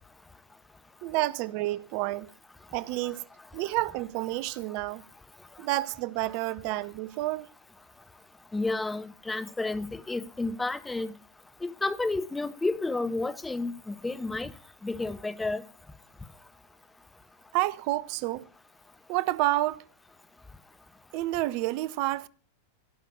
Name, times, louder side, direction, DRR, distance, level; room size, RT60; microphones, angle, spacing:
voice 1, 1.0-2.3 2.7-3.3 3.5-5.0 5.6-7.5 17.5-18.5 19.1-19.8 21.1-22.3, right 17 dB, 45° right, 0.5 m, -29 dB
voice 2, 8.5-11.1 11.6-14.5 14.8-15.6, left 2 dB, 10° left, 1.0 m, -31 dB
16.5 x 5.7 x 8.7 m
figure-of-eight pair, 90°, 0 cm